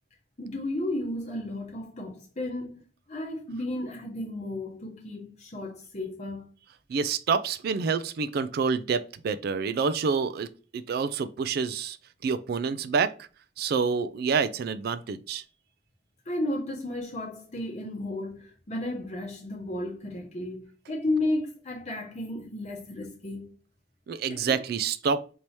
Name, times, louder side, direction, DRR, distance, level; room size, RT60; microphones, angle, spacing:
voice 1, 0.4-2.8 3.1-6.5 16.3-23.5 24.3-24.6, left 1 dB, 40° left, 0.8 m, -33 dB
voice 2, 6.9-10.5 10.7-12.0 12.2-13.3 13.6-15.4 24.1-25.2, right 5 dB, 60° right, 0.3 m, -27 dB
4.5 x 2.8 x 3.1 m
head